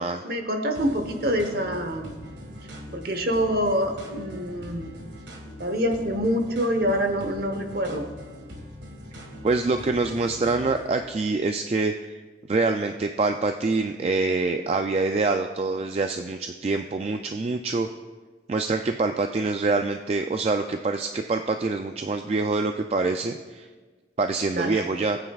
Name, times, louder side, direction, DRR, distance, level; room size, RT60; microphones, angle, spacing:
voice 1, 0.2-2.2 2.9-5.0 5.6-8.1 24.6-24.8, equal, 55° right, 6 dB, 1.0 m, -26 dB
sound 1, 0.7-11.1, equal, 85° right, 1.8 m, -42 dB
voice 2, 9.4-12.2 12.5-17.9 18.5-23.7 24.2-25.2, right 3 dB, 35° right, 6 dB, 0.3 m, -25 dB
19.0 x 9.0 x 2.4 m, 1.4 s
head